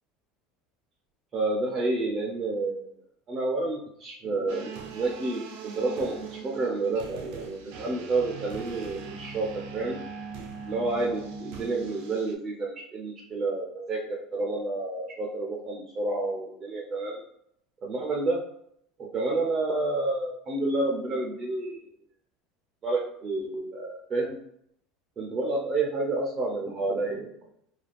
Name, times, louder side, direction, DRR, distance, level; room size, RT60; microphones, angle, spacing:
voice 1, 1.3-2.9 3.3-9.5 9.7-10.0 10.7-17.2 17.8-18.4 19.0-21.8 22.8-24.4 25.2-27.3, right 2 dB, 30° right, -1 dB, 0.6 m, -29 dB
sound 1, 4.5-12.3, right 5 dB, 70° right, 0.6 m, -41 dB
2.4 x 2.3 x 3.3 m, 0.72 s
supercardioid pair, 120°, 0 cm